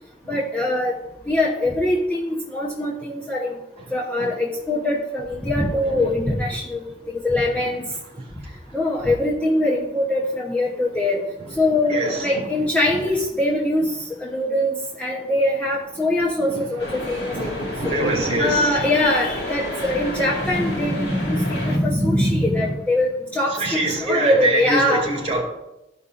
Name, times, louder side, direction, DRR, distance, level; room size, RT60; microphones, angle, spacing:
voice 1, 0.3-0.9 1.3-3.6 3.9-6.8 7.1-7.8 8.7-11.3 11.6-18.0 18.4-25.1, left 1 dB, 10° left, -5 dB, 0.8 m, -22 dB
voice 2, 11.9-12.3 16.5-16.6 17.3-18.9 23.6-25.4, right 2 dB, 35° right, -2 dB, 2.6 m, -24 dB
sound 1, 16.8-21.8, left 1 dB, 55° left, 2.2 m, -31 dB
13.5 x 5.4 x 2.5 m, 0.92 s
head